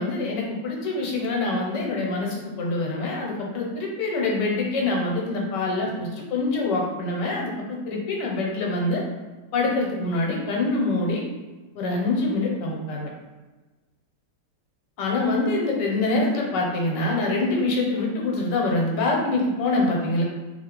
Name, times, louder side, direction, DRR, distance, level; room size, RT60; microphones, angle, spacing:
voice 1, 0.0-9.0 9.5-11.2 11.8-13.1 15.0-20.2, left 2 dB, 80° left, -1 dB, 1.3 m, -25 dB
2.9 x 2.7 x 2.9 m, 1.2 s
omnidirectional pair, 1.9 m